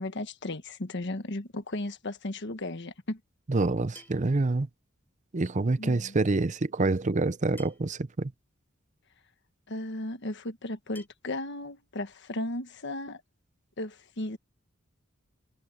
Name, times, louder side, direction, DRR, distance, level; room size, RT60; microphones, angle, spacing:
voice 1, 0.0-3.2 5.8-6.1 9.7-13.2 13.8-14.4, left 1 dB, 60° left, 1.4 m, -35 dB
voice 2, 3.5-4.7 5.3-8.3, right 3 dB, 40° right, 0.6 m, -27 dB
sound 1, 3.9-4.4 5.9-6.0 7.6-8.0 9.2-9.3 10.9-11.1, left 2 dB, 10° left, 6.3 m, -52 dB
head